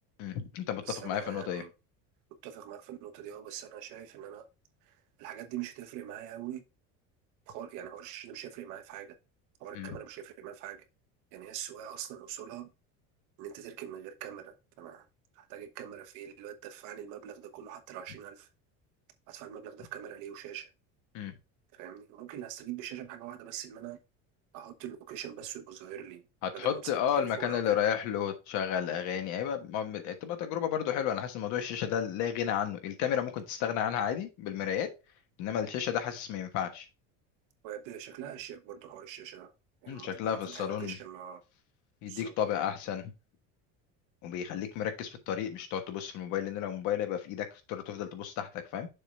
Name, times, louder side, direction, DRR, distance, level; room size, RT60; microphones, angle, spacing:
voice 1, 0.2-1.6 9.7-9.9 21.1-21.3 26.4-34.9 35.4-36.9 39.9-40.9 42.0-43.1 44.2-48.9, left 9 dB, 60° left, 1.3 m, -32 dB
voice 2, 0.8-1.7 2.4-4.5 4.8-6.6 7.5-9.2 9.6-10.8 11.3-12.7 13.4-15.1 15.3-18.5 19.3-20.7 21.7-24.0 24.5-26.3 26.5-27.8 37.6-39.5 39.8-41.4 42.0-42.3, right 10 dB, 60° right, 1.1 m, -43 dB
6.9 x 3.7 x 4.4 m
cardioid pair, 170°, 34 cm